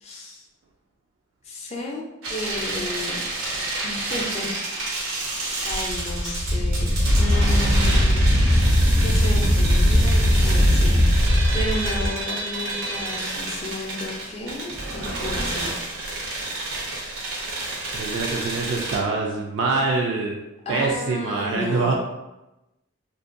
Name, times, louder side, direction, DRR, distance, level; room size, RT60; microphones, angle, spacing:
voice 1, 0.0-0.4 1.4-3.2 3.8-4.9 5.6-8.3 8.9-15.7 20.7-21.9, left 1 dB, 30° left, -1 dB, 0.4 m, -33 dB
sound 1, 2.2-19.0, right 2 dB, 85° right, 0.7 m, -30 dB
Wind, 5.7-12.1, equal, 80° left, 0.6 m, -19 dB
voice 2, 17.9-21.9, right 3 dB, 60° right, -1 dB, 0.3 m, -25 dB
2.5 x 2.2 x 2.4 m, 0.96 s
head